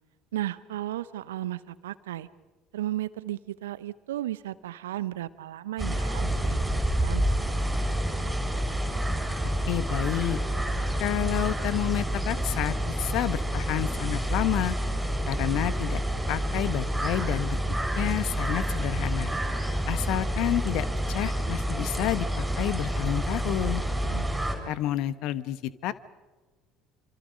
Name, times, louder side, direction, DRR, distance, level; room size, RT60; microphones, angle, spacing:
voice 1, 0.3-2.3 2.7-8.3 24.0-24.8, right 14 dB, 70° right, 17 dB, 0.8 m, -35 dB
sound 1, 5.8-24.6, right 1 dB, 5° right, 6.0 m, -28 dB
voice 2, 9.7-10.4 11.0-14.7 15.3-16.0 16.3-17.6 17.9-19.3 19.9-23.8 24.7-25.9, left 14 dB, 55° left, 16 dB, 1.1 m, -29 dB
27.5 x 26.5 x 5.4 m, 1.3 s
figure-of-eight pair, 60°, 0 cm